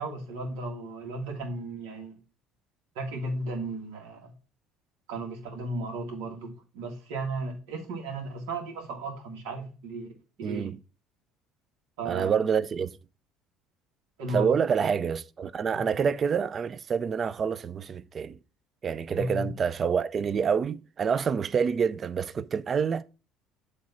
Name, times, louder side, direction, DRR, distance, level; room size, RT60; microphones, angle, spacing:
voice 1, 0.0-2.2 3.0-4.3 5.1-10.1 10.4-10.7 12.0-12.4 14.2-14.5 19.1-19.5, right 2 dB, 90° right, 1.9 m, -35 dB
voice 2, 10.4-10.8 12.0-13.0 14.3-18.4 18.8-23.0, right 6 dB, 35° right, 0.4 m, -27 dB
7.6 x 3.1 x 5.7 m
supercardioid pair, 105°, 0 cm